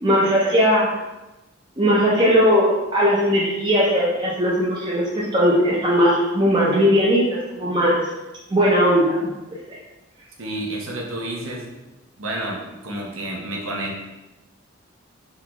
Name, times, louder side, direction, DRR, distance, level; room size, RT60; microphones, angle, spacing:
voice 1, 0.0-0.9 1.8-8.0 8.5-9.2, equal, 20° right, -6 dB, 0.5 m, -18 dB
voice 2, 10.4-11.7 12.2-14.0, right 1 dB, 80° right, -1 dB, 0.7 m, -30 dB
3.7 x 2.3 x 2.9 m, 1.0 s
head